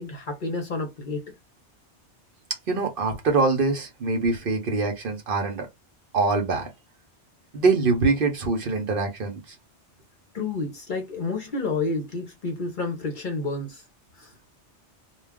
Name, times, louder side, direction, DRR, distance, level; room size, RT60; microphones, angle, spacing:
voice 1, 0.0-1.3 10.3-13.8 14.2-14.3, left 3 dB, 50° left, 0.7 m, -30 dB
voice 2, 2.7-5.7 6.1-6.7 7.5-9.6, right 3 dB, 55° right, 0.8 m, -24 dB
2.3 x 2.2 x 3.4 m
omnidirectional pair, 1.2 m